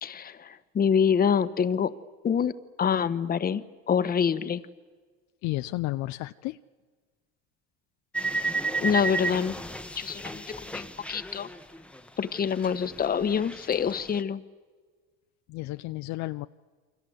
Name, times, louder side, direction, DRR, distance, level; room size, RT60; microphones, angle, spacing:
voice 1, 0.0-1.9 2.2-2.5 2.8-4.6 8.8-9.6 10.0-11.5 12.2-14.4, left 7 dB, 30° left, 13 dB, 1.3 m, -26 dB
voice 2, 5.4-6.6 15.5-16.5, left 18 dB, 60° left, 12 dB, 0.7 m, -32 dB
sound 1, 8.1-12.1 12.3-14.2, right 3 dB, 5° left, 1.2 m, -33 dB
29.0 x 24.5 x 8.0 m, 1.5 s
supercardioid pair, 115°, 32 cm